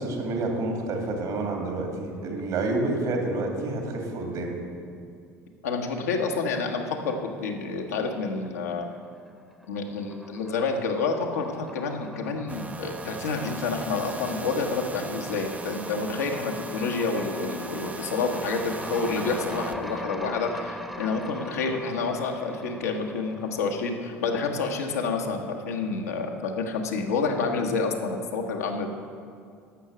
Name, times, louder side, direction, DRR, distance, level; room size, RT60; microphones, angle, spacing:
voice 1, 0.0-4.6, right 2 dB, 60° right, 2 dB, 2.4 m, -29 dB
voice 2, 5.6-8.9 9.7-28.9, left 4 dB, 80° left, 2 dB, 1.1 m, -29 dB
sound 1, 8.4-9.0 9.3-24.4, equal, ahead, 0.9 m, -42 dB
sound 2, 12.5-20.0, right 4 dB, 20° right, 0.6 m, -39 dB
11.5 x 6.4 x 7.3 m, 2.3 s
hypercardioid pair, 65°, 8 cm